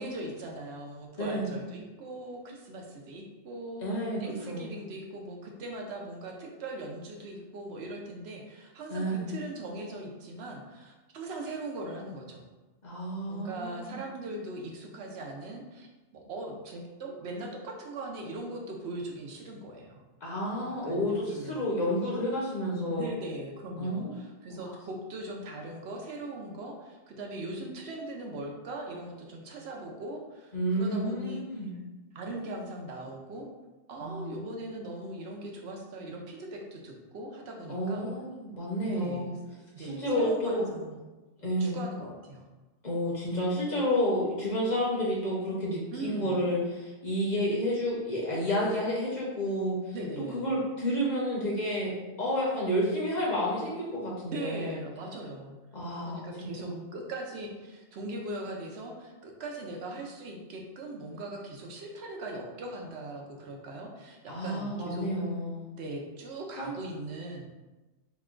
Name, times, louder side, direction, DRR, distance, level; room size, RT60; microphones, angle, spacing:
voice 1, 0.0-3.8 4.2-12.4 13.3-15.9 16.3-20.0 20.3-20.4 20.8-21.6 22.9-31.4 32.1-33.5 33.9-38.1 38.9-39.3 39.7-41.0 41.6-42.5 45.9-46.4 49.9-50.5 54.3-55.6 56.0-65.1 65.8-67.5, right 2 dB, 70° right, 0 dB, 0.8 m, -40 dB
voice 2, 1.2-1.5 3.8-4.7 8.9-9.3 12.8-14.0 20.2-23.1 23.8-24.1 24.5-24.7 30.5-31.7 34.0-34.4 37.7-39.3 39.8-40.7 41.4-41.8 42.8-49.9 50.3-51.9 52.2-54.8 55.7-56.8 64.3-65.7 66.6-66.7, equal, 45° left, -5 dB, 0.7 m, -30 dB
2.9 x 2.2 x 3.6 m, 1.1 s
omnidirectional pair, 1.2 m